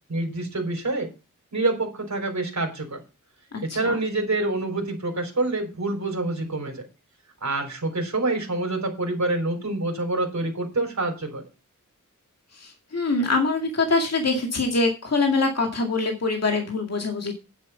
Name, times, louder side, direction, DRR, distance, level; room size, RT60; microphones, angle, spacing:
voice 1, 0.1-1.1 1.5-3.0 3.6-6.9 7.4-11.4, right 2 dB, 60° right, 2 dB, 3.9 m, -26 dB
voice 2, 3.5-4.0 12.5-17.4, left 3 dB, 50° left, 3 dB, 2.1 m, -24 dB
9.9 x 7.8 x 5.5 m, 0.29 s
wide cardioid pair, 105°, 32 cm